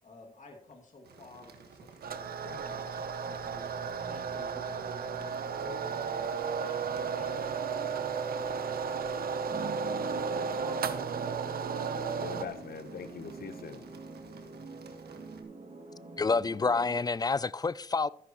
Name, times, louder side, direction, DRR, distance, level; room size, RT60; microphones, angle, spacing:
voice 1, 0.0-2.9 3.3-6.1 6.4-11.3 11.7-12.6, left 3 dB, 50° left, 2.3 m, -54 dB
sound 1, 1.0-15.4, right 5 dB, 90° right, 1.5 m, -54 dB
sound 2, 2.0-12.5, right 6 dB, 70° right, 0.8 m, -34 dB
voice 2, 2.4-3.1 5.6-5.8 12.2-13.9, left 6 dB, 70° left, 1.0 m, -43 dB
sound 3, 3.2-6.5 6.9-7.0 9.5-17.0, right 3 dB, 55° right, 2.5 m, -46 dB
voice 3, 16.2-18.1, left 4 dB, 25° left, 0.3 m, -28 dB
13.5 x 10.5 x 3.0 m
cardioid pair, 85°, 16 cm